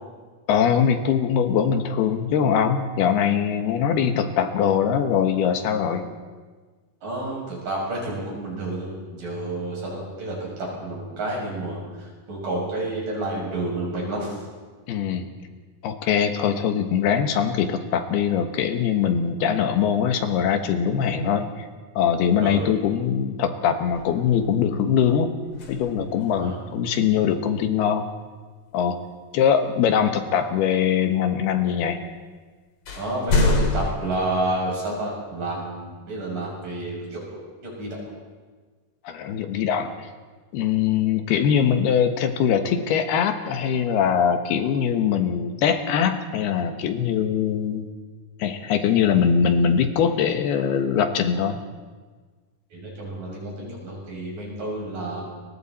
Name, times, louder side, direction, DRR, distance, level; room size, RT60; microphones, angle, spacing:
voice 1, 0.5-6.1 14.9-15.3 15.8-21.7 22.0-25.3 25.7-28.1 28.7-29.0 29.3-32.0 39.0-40.1 40.5-47.9 48.4-51.6, left 8 dB, 85° left, 7 dB, 3.3 m, -22 dB
voice 2, 7.0-14.3 22.4-22.6 26.4-26.6 33.0-37.2 37.6-38.0 52.7-55.2, right 2 dB, 60° right, -3 dB, 8.6 m, -30 dB
sound 1, 23.9-24.7 25.5-26.4 30.0-30.1 32.1-32.2 32.8-34.0, left 2 dB, 45° left, 3.0 m, -25 dB
29.5 x 23.5 x 4.3 m, 1.4 s
omnidirectional pair, 4.4 m